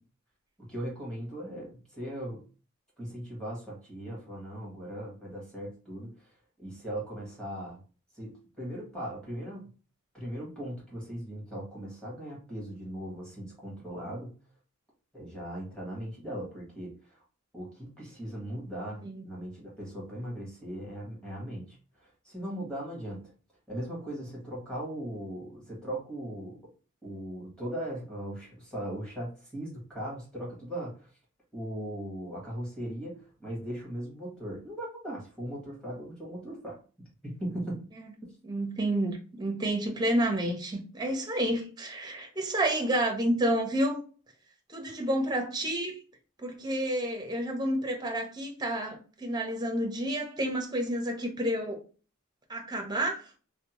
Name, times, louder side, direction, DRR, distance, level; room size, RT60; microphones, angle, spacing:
voice 1, 0.6-2.4 3.0-6.3 6.6-7.8 8.1-9.7 10.1-14.3 15.1-17.2 17.5-23.2 23.7-26.6 27.0-31.1 31.5-36.8 37.2-37.8, right 1 dB, 5° left, 1.2 m, -38 dB
voice 2, 38.4-44.0 44.7-46.0 46.4-51.8 52.5-53.3, right 1 dB, 20° right, 0.6 m, -30 dB
2.7 x 2.1 x 2.9 m
head